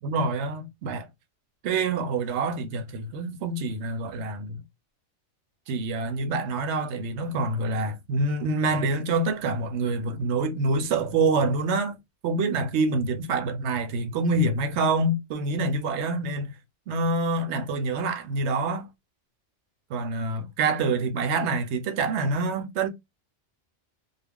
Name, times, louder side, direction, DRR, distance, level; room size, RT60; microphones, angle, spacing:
voice 1, 0.0-1.1 1.6-4.6 5.7-11.9 12.2-16.5 16.9-18.9 19.9-22.9, right 3 dB, 75° right, 0.9 m, -26 dB
2.3 x 2.1 x 3.4 m
omnidirectional pair, 1.2 m